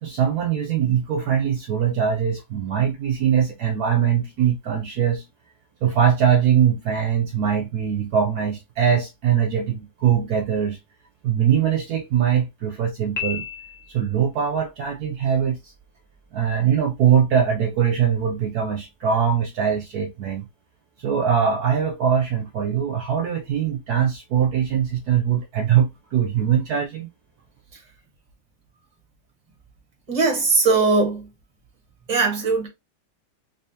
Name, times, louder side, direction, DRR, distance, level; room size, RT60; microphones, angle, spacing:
voice 1, 0.0-5.3 5.8-10.8 11.2-13.4 13.9-15.7 16.3-20.5 21.0-27.1, right 8 dB, 65° right, 1.1 m, -22 dB
Piano, 13.2-14.3, left 7 dB, 35° left, 0.8 m, -32 dB
voice 2, 30.1-31.2 32.1-32.7, right 4 dB, 25° right, 1.3 m, -19 dB
3.5 x 3.3 x 2.8 m
omnidirectional pair, 1.9 m